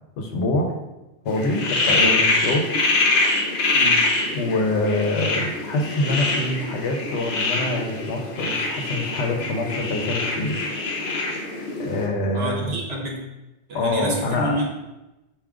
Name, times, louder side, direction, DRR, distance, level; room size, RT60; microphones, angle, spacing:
voice 1, 0.2-0.7 1.2-2.7 4.3-10.6 11.8-12.8 13.7-14.6, left 2 dB, 80° left, 3 dB, 1.0 m, -25 dB
sound 1, 1.3-12.1, left 3 dB, 55° left, 0.8 m, -24 dB
voice 2, 12.3-13.2 13.7-14.6, right 1 dB, 65° right, -1 dB, 1.1 m, -28 dB
4.8 x 2.7 x 3.5 m, 1.0 s
omnidirectional pair, 1.2 m